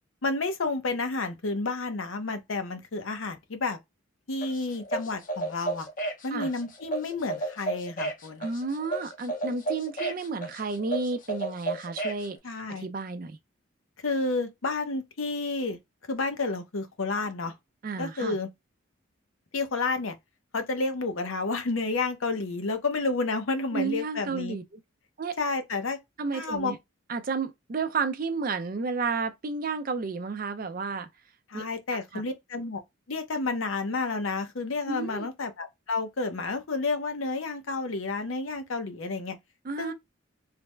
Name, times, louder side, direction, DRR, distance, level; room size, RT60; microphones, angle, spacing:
voice 1, 0.2-3.8 4.3-5.9 6.2-8.5 12.4-12.8 14.0-15.8 16.1-17.5 18.0-18.5 19.5-20.2 20.5-24.6 25.4-26.0 26.3-26.7 31.5-32.8 33.1-39.4 39.8-39.9, left 3 dB, 80° left, 0.7 m, -30 dB
sound 1, 4.4-12.3, right 2 dB, 40° left, 0.7 m, -33 dB
voice 2, 8.4-13.4 17.8-18.4 23.7-24.8 25.2-25.4 26.2-26.8 27.1-31.1 31.5-31.6 31.9-32.2 34.9-35.3 39.6-39.9, right 4 dB, 45° right, 0.4 m, -32 dB
3.3 x 2.1 x 3.2 m
head